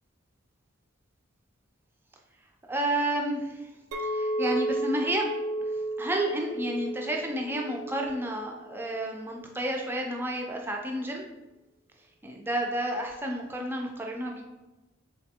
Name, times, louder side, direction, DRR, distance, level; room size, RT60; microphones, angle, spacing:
voice 1, 2.7-3.7 4.0-5.3 6.0-11.3 12.2-14.4, right 1 dB, 10° right, 1 dB, 0.4 m, -31 dB
Chink clink, 3.9-9.1, right 1 dB, 90° right, 0.4 m, -33 dB
3.7 x 3.3 x 2.8 m, 1.1 s
head